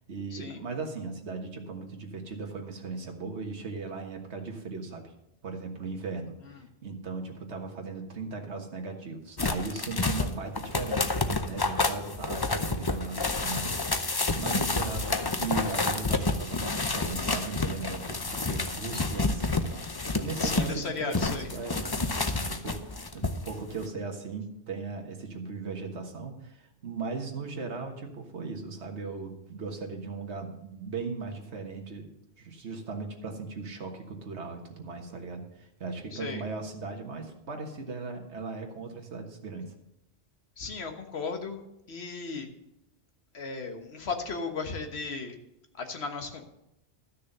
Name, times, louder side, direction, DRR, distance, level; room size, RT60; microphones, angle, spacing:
voice 1, 0.1-5.1 5.4-19.7 20.0-32.1 32.4-39.7, right 4 dB, 70° right, 2 dB, 1.8 m, -38 dB
sound 1, 9.4-20.8 21.1-23.5 23.8-23.9, left 3 dB, 25° left, 0.6 m, -29 dB
voice 2, 20.4-21.5 36.1-36.4 40.6-41.6 41.9-42.5 43.3-45.4 45.8-46.4, left 4 dB, 60° left, 5 dB, 1.6 m, -35 dB
12.5 x 6.6 x 6.7 m, 0.86 s
omnidirectional pair, 1.2 m